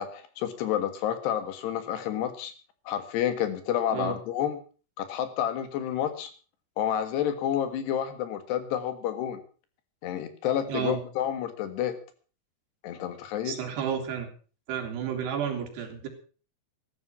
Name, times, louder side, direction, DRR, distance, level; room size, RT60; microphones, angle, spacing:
voice 1, 0.0-2.5 2.9-4.6 5.0-6.3 6.8-9.4 10.0-12.0 12.8-13.6, left 10 dB, 80° left, 10 dB, 3.7 m, -29 dB
voice 2, 10.7-11.0 13.4-14.3 14.7-16.1, right 8 dB, 80° right, 4 dB, 4.8 m, -31 dB
14.5 x 12.5 x 5.9 m, 0.38 s
omnidirectional pair, 4.8 m